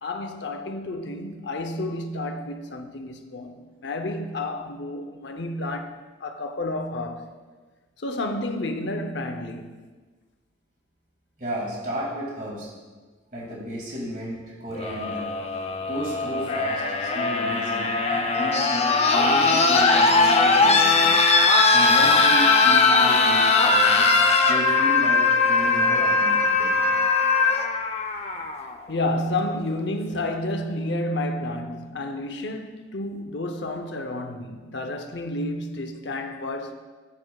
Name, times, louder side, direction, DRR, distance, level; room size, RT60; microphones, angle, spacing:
voice 1, 0.0-7.3 8.0-9.8 28.9-36.7, left 1 dB, 75° left, 0.7 m, -30 dB
voice 2, 11.4-12.7 13.3-15.3 15.9-21.1 21.4-24.1 24.5-26.7, equal, 45° right, 2.4 m, -33 dB
sound 1, 14.7-28.7 30.0-30.1, left 3 dB, 35° left, 0.6 m, -20 dB
12.0 x 8.6 x 2.3 m
head